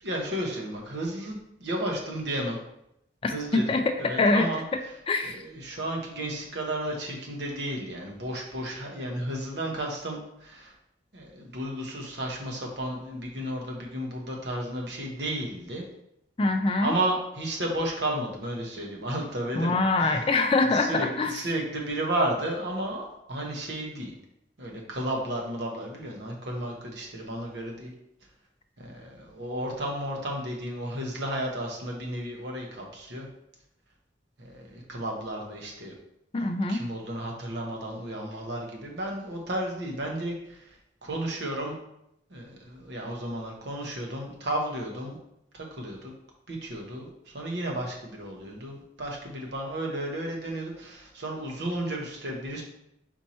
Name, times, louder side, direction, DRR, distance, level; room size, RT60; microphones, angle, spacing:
voice 1, 0.0-2.6 3.3-4.6 5.2-10.7 11.1-15.8 16.8-20.2 20.7-24.1 24.6-27.9 28.8-33.3 34.4-35.9 36.7-40.8 41.0-41.8 42.3-45.2 45.5-46.1 46.5-52.6, right 1 dB, 65° right, 0 dB, 1.0 m, -33 dB
voice 2, 4.2-4.8 5.1-5.4 16.4-17.0 19.5-21.3 36.3-36.9, left 3 dB, 30° left, 6 dB, 0.3 m, -24 dB
4.4 x 2.8 x 4.3 m, 0.80 s
head